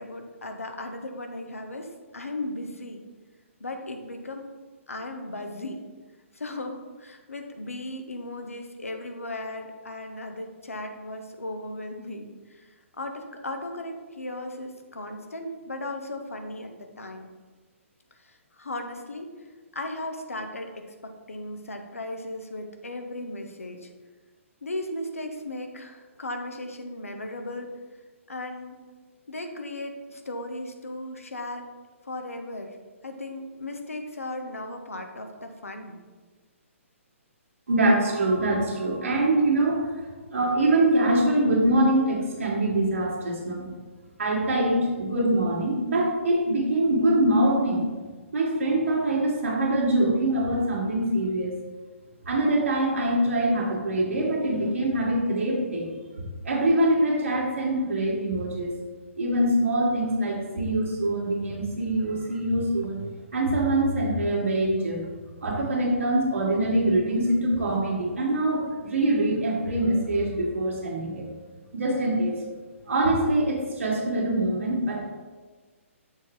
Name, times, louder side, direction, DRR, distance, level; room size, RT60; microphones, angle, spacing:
voice 1, 0.0-3.0 3.6-4.5 4.9-5.9 6.3-17.3 18.2-19.5 19.7-23.9 24.6-27.7 28.3-28.8 29.3-31.7 32.0-32.8 33.0-36.0, left 1 dB, 80° left, 5 dB, 0.9 m, -36 dB
voice 2, 37.7-39.9 40.3-43.7 44.2-47.9 48.3-51.6 52.3-55.9 56.2-58.7 59.2-63.0 63.3-65.0 65.4-71.3 71.7-72.4 72.9-75.0, right 1 dB, 70° right, -3 dB, 1.8 m, -24 dB
7.0 x 3.9 x 4.6 m, 1.4 s
figure-of-eight pair, 130°, 7 cm